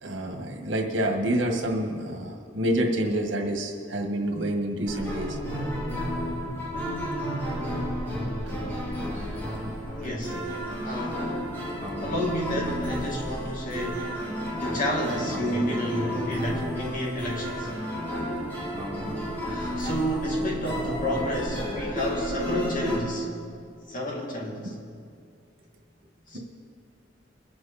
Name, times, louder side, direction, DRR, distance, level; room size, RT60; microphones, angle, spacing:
voice 1, 0.0-5.4 8.4-8.5 9.0-9.1 9.7-9.8 24.6-24.7, right 1 dB, 85° right, 2 dB, 1.7 m, -28 dB
sound 1, 4.9-23.0, equal, 10° left, 2.5 m, -32 dB
voice 2, 10.0-10.5 10.8-11.3 12.0-14.1 14.6-17.7 19.4-23.3 23.9-24.8 26.3-26.4, equal, 45° left, -2 dB, 2.5 m, -30 dB
22.5 x 8.0 x 4.2 m, 2.3 s
head